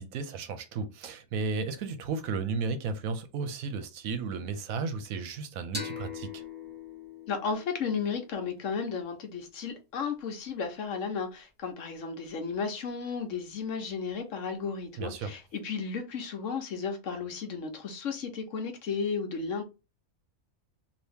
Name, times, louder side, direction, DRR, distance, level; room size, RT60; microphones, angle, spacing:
voice 1, 0.0-6.4 15.0-15.3, right 4 dB, 70° right, 1.0 m, -34 dB
sound 1, 5.7-9.1, left 4 dB, 10° right, 0.9 m, -42 dB
voice 2, 7.3-19.6, left 5 dB, 60° left, 1.0 m, -34 dB
2.9 x 2.6 x 3.4 m
omnidirectional pair, 1.6 m